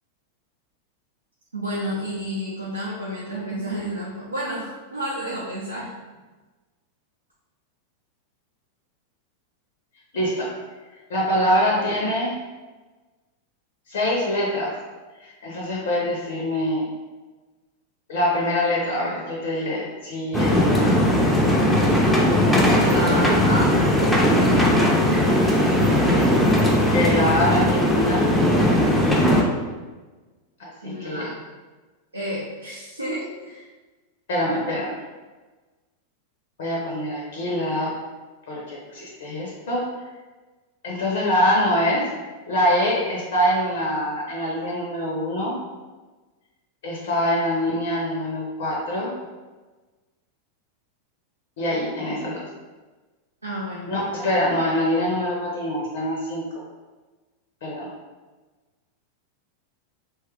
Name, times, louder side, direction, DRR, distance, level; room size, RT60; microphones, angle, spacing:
voice 1, 1.5-5.9 11.7-11.8 22.7-23.8 30.8-31.3 32.1-33.7 53.4-53.9, equal, 80° right, -6 dB, 0.5 m, -30 dB
voice 2, 10.1-10.5 11.1-12.4 13.9-14.8 15.2-16.9 18.1-20.9 26.8-28.3 30.6-31.3 34.3-35.0 36.6-38.0 38.5-39.9 40.8-42.1 42.5-45.6 46.8-49.2 51.6-52.4 53.9-56.5 57.6-57.9, equal, 60° left, -3 dB, 0.6 m, -24 dB
sound 1, 20.3-29.4, left 1 dB, 5° left, 0.5 m, -18 dB
2.8 x 2.3 x 3.3 m, 1.3 s
figure-of-eight pair, 90°, 0 cm